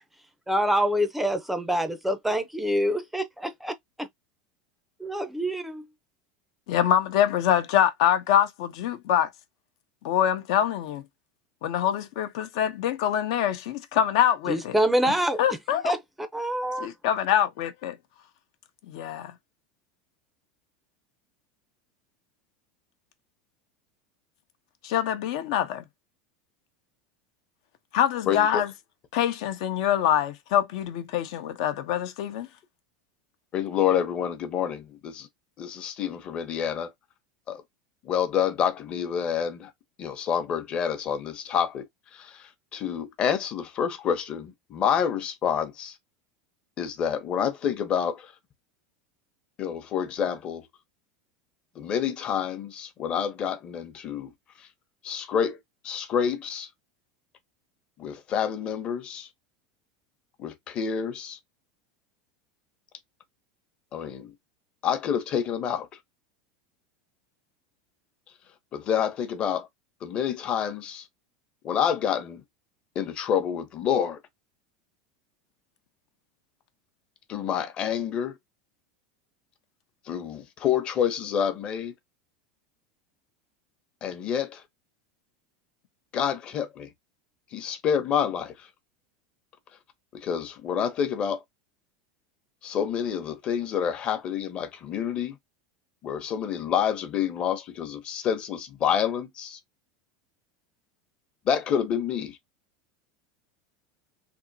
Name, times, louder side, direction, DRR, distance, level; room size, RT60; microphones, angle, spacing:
voice 1, 0.5-3.7 5.0-5.9 14.5-15.4 15.8-16.9, equal, 5° right, 0.5 m, -26 dB
voice 2, 6.7-9.3 10.0-11.0 11.6-14.7 15.4-15.9 16.8-18.0 18.9-19.3 24.8-25.8 27.9-28.7 29.1-32.5, left 10 dB, 70° left, 0.8 m, -25 dB
voice 3, 28.3-28.6 33.5-35.3 35.6-36.9 37.5-37.6 38.0-39.7 40.0-41.9 42.1-45.9 46.8-48.3 49.6-50.6 51.8-54.3 55.0-55.6 55.8-56.7 58.0-59.3 60.4-61.4 63.9-64.3 64.8-65.9 68.7-69.7 70.0-71.1 71.6-72.4 72.9-74.2 77.3-78.4 80.1-81.9 84.0-84.6 86.1-86.9 87.5-88.7 90.1-91.4 92.6-95.3 96.0-99.6 101.5-102.4, left 8 dB, 35° left, 0.9 m, -28 dB
3.5 x 2.9 x 2.7 m
supercardioid pair, 140°, 3 cm